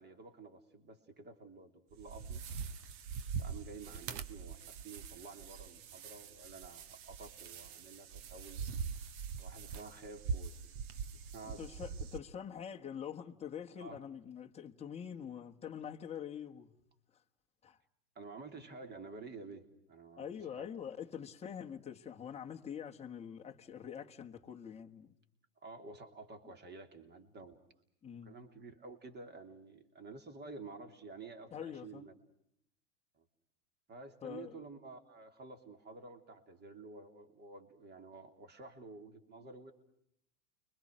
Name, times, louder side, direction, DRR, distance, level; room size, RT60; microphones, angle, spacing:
voice 1, 0.0-2.5 3.4-8.6 9.4-10.5 11.3-11.6 13.8-14.0 18.1-20.3 20.6-20.7 25.6-27.6 28.2-32.1 33.2-33.3 33.9-39.7, right 3 dB, 20° right, 3.1 m, -51 dB
sound 1, 1.9-12.2, right 6 dB, 45° right, 1.5 m, -43 dB
voice 2, 11.4-16.8 17.1-17.2 17.6-17.8 20.2-25.1 26.4-26.5 28.0-28.4 31.5-32.1 34.2-34.6 39.4-39.5, left 8 dB, 15° left, 1.5 m, -45 dB
29.5 x 24.0 x 6.3 m
hypercardioid pair, 130°, 46 cm